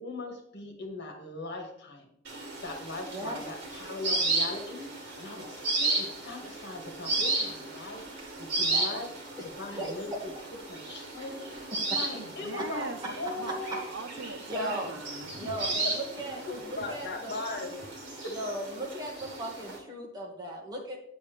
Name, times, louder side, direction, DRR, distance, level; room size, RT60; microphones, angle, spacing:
voice 1, 0.0-9.1 9.6-10.1 10.7-13.8 15.6-17.9 18.2-18.6, left 2 dB, 60° left, 2.0 m, -40 dB
sound 1, 2.2-19.8, right 2 dB, 60° right, 2.6 m, -34 dB
voice 2, 3.1-3.4 5.3-5.5 8.6-9.0 9.4-9.5 9.8-9.9 13.7-13.8 14.5-14.9 15.4-17.4 18.3-21.0, right 1 dB, 20° right, 2.1 m, -37 dB
voice 3, 12.2-15.9 16.3-17.0 19.2-19.3, right 3 dB, 75° right, 0.9 m, -42 dB
8.4 x 8.3 x 3.5 m
head